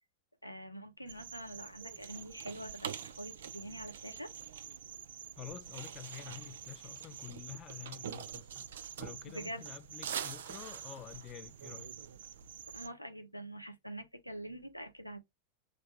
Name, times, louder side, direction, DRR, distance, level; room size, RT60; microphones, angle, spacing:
voice 1, 0.4-4.3 9.3-9.6 12.7-15.2, right 1 dB, 90° left, 0.7 m, -45 dB
sound 1, 1.1-12.9, right 8 dB, 60° right, 0.4 m, -45 dB
voice 2, 5.4-8.6 9.0-11.9, left 11 dB, 30° left, 0.4 m, -48 dB
3.3 x 2.5 x 3.1 m
figure-of-eight pair, 90°, 0 cm